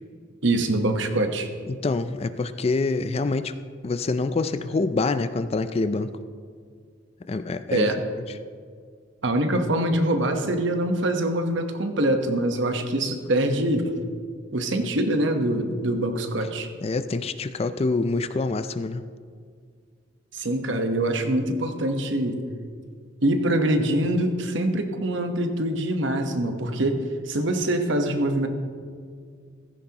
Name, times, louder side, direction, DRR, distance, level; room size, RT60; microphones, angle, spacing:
voice 1, 0.4-1.5 7.7-8.0 9.2-13.9 14.5-16.7 20.3-22.4 23.2-28.5, right 1 dB, 65° right, 6 dB, 1.1 m, -24 dB
voice 2, 1.7-3.5 3.8-6.1 7.3-7.9 16.8-19.0, left 3 dB, 30° left, 12 dB, 0.4 m, -26 dB
15.5 x 14.0 x 2.9 m, 2.1 s
head